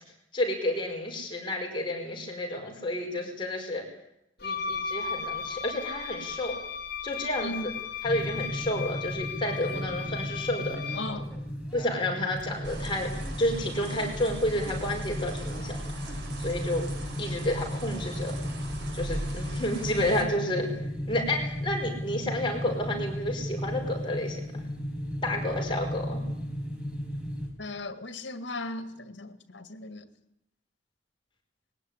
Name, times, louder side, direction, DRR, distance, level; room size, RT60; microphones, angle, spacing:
voice 1, 0.3-3.8 4.4-6.6 7.0-7.7 8.0-11.0 11.7-13.1 13.4-15.9 16.4-16.8 17.2-18.3 18.9-20.8 21.1-24.6 25.2-26.2, left 1 dB, 25° left, 5.1 m, -30 dB
Wind instrument woodwind instrument, 4.4-11.2, left 6 dB, 55° left, 3.5 m, -36 dB
voice 2, 7.4-7.7 10.9-11.3 27.6-30.1, left 2 dB, 75° left, 1.9 m, -37 dB
sound 1, 8.0-27.5, equal, 5° right, 4.6 m, -35 dB
sound 2, 12.6-20.2, right 1 dB, 65° right, 4.5 m, -39 dB
20.5 x 17.0 x 9.9 m
head